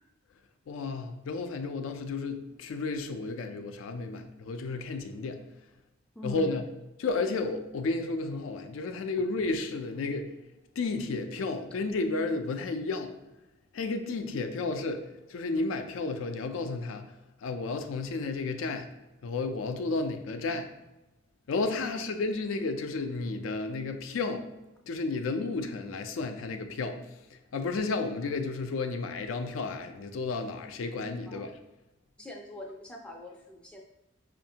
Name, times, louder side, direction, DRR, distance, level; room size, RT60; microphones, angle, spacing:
voice 1, 0.7-5.4 6.2-6.6 7.0-10.3 10.8-13.1 13.7-15.0 15.3-17.1 17.4-18.9 19.2-20.7 21.5-24.5 24.9-27.0 27.5-31.5, left 3 dB, 80° left, 7 dB, 0.4 m, -32 dB
voice 2, 6.2-6.6 21.8-22.0 31.3-31.4 32.2-33.8, left 1 dB, 5° left, 0 dB, 0.3 m, -42 dB
5.4 x 2.5 x 2.7 m, 1.0 s
head